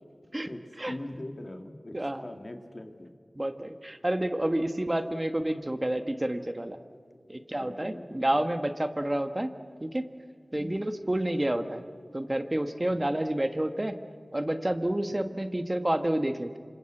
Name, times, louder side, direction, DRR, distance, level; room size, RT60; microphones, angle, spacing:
voice 1, 0.5-3.1 7.2-8.3 10.5-10.9 12.9-13.2 15.1-15.4, left 1 dB, 50° left, 4 dB, 2.6 m, -43 dB
voice 2, 1.9-2.3 3.4-6.8 7.3-9.5 9.8-10.0 10.5-11.8 12.1-14.0 14.3-16.6, right 1 dB, 25° right, 8 dB, 1.4 m, -29 dB
27.0 x 26.0 x 7.9 m, 2.1 s
wide cardioid pair, 45°, 0 cm